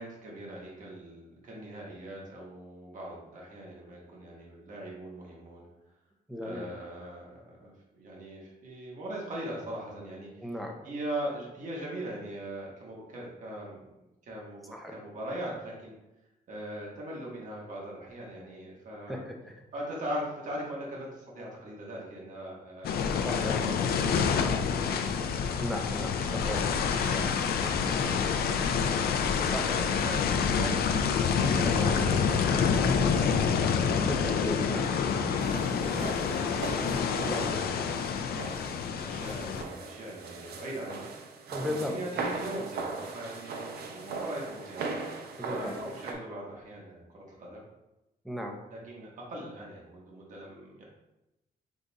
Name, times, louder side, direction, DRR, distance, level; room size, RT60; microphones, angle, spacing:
voice 1, 0.0-5.7 6.4-10.5 10.8-13.9 14.2-16.0 16.5-19.2 19.7-25.5 26.2-28.0 28.3-28.9 29.7-30.8 31.4-33.4 33.9-34.4 34.8-35.4 35.7-36.5 37.1-38.1 39.0-41.1 41.6-45.0 45.5-47.6 48.7-50.8, right 1 dB, 55° right, -3 dB, 1.2 m, -40 dB
voice 2, 6.3-6.7 10.4-10.7 14.7-15.0 19.1-19.5 23.2-23.6 25.6-26.6 29.3-29.8 34.0-35.3 37.2-37.4 41.5-42.2 45.4-45.7 48.2-48.6, equal, ahead, 1 dB, 0.5 m, -36 dB
sound 1, 22.8-39.6, left 6 dB, 75° left, 0.4 m, -27 dB
sound 2, 35.4-46.1, right 4 dB, 85° right, 0.6 m, -39 dB
5.2 x 2.4 x 4.0 m, 0.94 s
wide cardioid pair, 170°, 16 cm